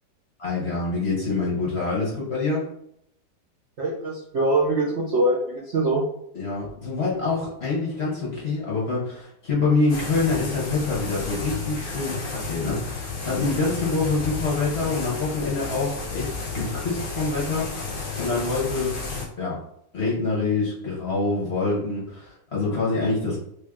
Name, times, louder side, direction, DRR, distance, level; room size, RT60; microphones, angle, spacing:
voice 1, 0.4-2.7 6.3-17.9 18.2-19.0 19.4-19.6 19.9-23.4, left 3 dB, 45° left, -6 dB, 0.9 m, -26 dB
voice 2, 3.8-6.0, right 2 dB, 70° right, -3 dB, 0.6 m, -23 dB
sound 1, 9.9-19.3, left 4 dB, 80° left, 0.4 m, -32 dB
3.2 x 2.6 x 3.5 m, 0.74 s
omnidirectional pair, 2.0 m